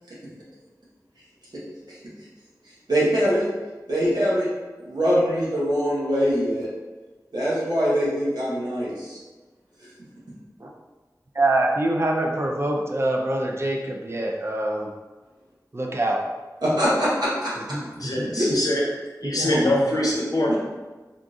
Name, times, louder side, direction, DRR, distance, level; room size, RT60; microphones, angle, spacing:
voice 1, 2.9-3.4 3.9-4.5 4.8-6.7 7.3-9.2 16.6-17.5 18.2-18.5 20.5-20.6, equal, 80° right, -8 dB, 1.1 m, -23 dB
voice 2, 11.4-14.9 15.7-16.2 17.7-18.3 19.2-19.7, right 1 dB, 40° right, 1 dB, 0.5 m, -25 dB
voice 3, 18.0-18.8 19.2-20.5, left 1 dB, 60° left, -4 dB, 0.8 m, -23 dB
3.6 x 2.5 x 2.4 m, 1.2 s
wide cardioid pair, 45°, 7 cm